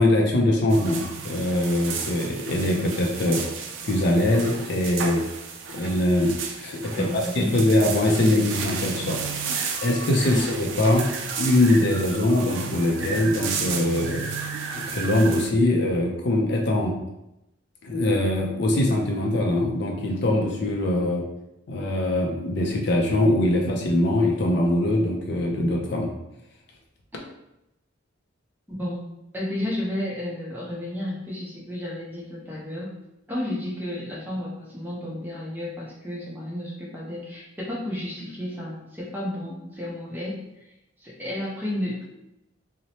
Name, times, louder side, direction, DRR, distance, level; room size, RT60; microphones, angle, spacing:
voice 1, 0.0-3.4 3.8-5.2 5.7-9.2 9.8-11.0 11.4-14.3 14.7-16.9 17.8-21.2 21.7-26.1, left 1 dB, 55° left, 0 dB, 0.4 m, -22 dB
sound 1, 0.7-15.5, right 6 dB, 75° right, 0.3 m, -33 dB
voice 2, 6.9-7.6 10.3-10.5 28.7-29.0 29.3-32.9 33.3-40.4 41.0-42.2, left 1 dB, 10° right, -5 dB, 0.6 m, -32 dB
2.9 x 2.0 x 2.7 m, 0.88 s
head